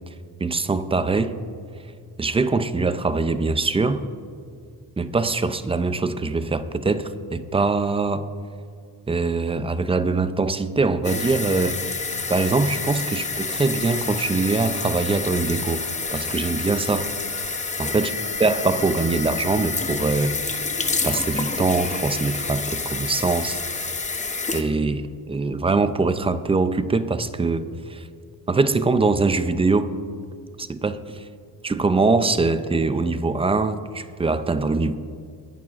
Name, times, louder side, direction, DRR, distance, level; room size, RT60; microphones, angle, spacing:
voice 1, 0.4-1.4 2.2-4.0 5.0-8.3 9.1-11.8 12.3-17.1 17.8-18.1 18.4-20.6 21.0-23.6 24.5-28.1 28.5-29.9 30.6-31.3 31.6-34.9, right 3 dB, 15° right, 0.3 m, -23 dB
Tap water in bathroom, 11.0-24.6, left 4 dB, 20° left, 0.7 m, -28 dB
22.5 x 11.0 x 2.4 m
wide cardioid pair, 155°, 39 cm